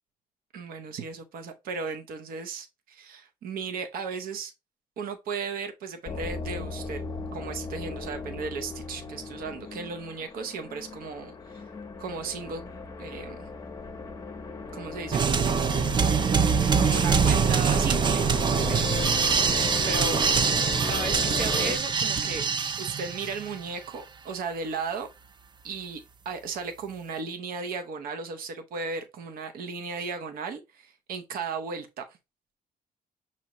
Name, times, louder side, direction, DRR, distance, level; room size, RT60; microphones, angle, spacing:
voice 1, 0.5-4.5 5.0-7.0 7.3-11.6 12.0-12.6 13.0-13.5 14.7-15.8 16.8-18.2 18.7-19.0 19.5-22.4 22.8-25.1 25.6-32.0, right 5 dB, 75° right, 0.7 m, -35 dB
sound 1, 6.1-21.8, left 4 dB, 25° left, 0.7 m, -36 dB
sound 2, 15.1-23.6, right 6 dB, 30° right, 0.3 m, -24 dB
6.1 x 2.8 x 2.9 m
cardioid pair, 115°, 15 cm